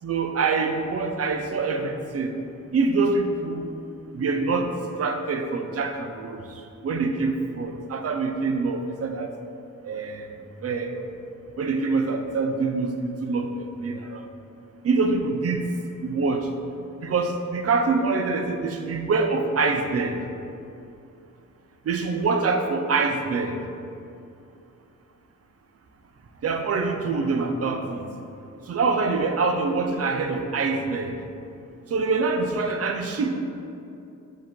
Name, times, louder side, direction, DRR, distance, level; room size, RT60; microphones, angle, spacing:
voice 1, 0.0-2.3 2.7-3.7 4.1-9.3 9.8-10.3 10.6-10.9 11.6-14.2 14.8-15.6 16.0-16.5 17.0-20.2 21.8-23.6 26.4-28.1 28.7-31.2 31.9-33.4, right 4 dB, 45° right, 5 dB, 0.6 m, -25 dB
7.1 x 3.0 x 4.4 m, 2.7 s
cardioid pair, 100°, 33 cm